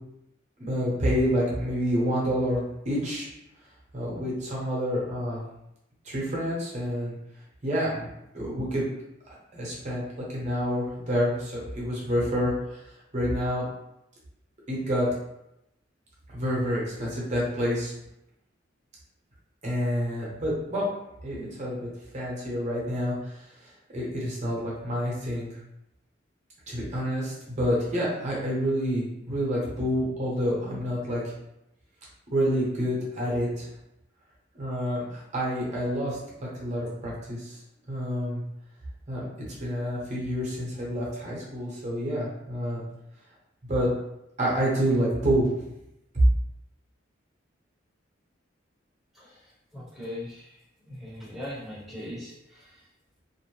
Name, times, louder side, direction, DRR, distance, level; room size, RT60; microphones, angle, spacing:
voice 1, 0.6-3.3 3.9-5.4 6.0-7.2 7.6-8.9 9.3-10.0 10.3-12.8 13.1-13.7 14.7-15.1 16.3-17.9 19.6-20.8 21.2-21.8 22.1-23.4 23.9-25.6 26.7-31.3 32.3-33.7 34.5-36.2 36.6-37.6 37.9-38.4 39.1-39.3 39.6-42.8 43.7-43.9 44.4-45.6 46.1-46.2, equal, 40° right, -5 dB, 0.9 m, -28 dB
voice 2, 49.1-52.8, left 1 dB, ahead, -11 dB, 0.8 m, -40 dB
2.6 x 2.1 x 3.0 m, 0.85 s
head